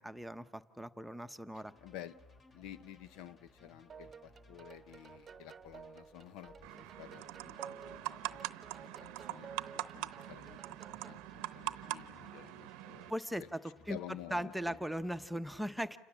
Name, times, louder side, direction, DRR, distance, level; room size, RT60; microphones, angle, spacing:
voice 1, 0.0-1.7 13.1-13.6 13.9-14.0 14.3-16.0, equal, 5° right, 0.9 m, -38 dB
sound 1, 1.5-15.3, left 2 dB, 35° left, 3.1 m, -62 dB
voice 2, 1.8-2.2 2.5-10.8 11.0-13.1 13.4-13.5 13.9-14.8, left 11 dB, 75° left, 0.9 m, -52 dB
sound 2, 3.9-11.3, right 6 dB, 30° right, 1.0 m, -53 dB
sound 3, 6.6-13.1, right 17 dB, 80° right, 0.8 m, -43 dB
29.0 x 26.5 x 7.4 m
supercardioid pair, 105°, 0 cm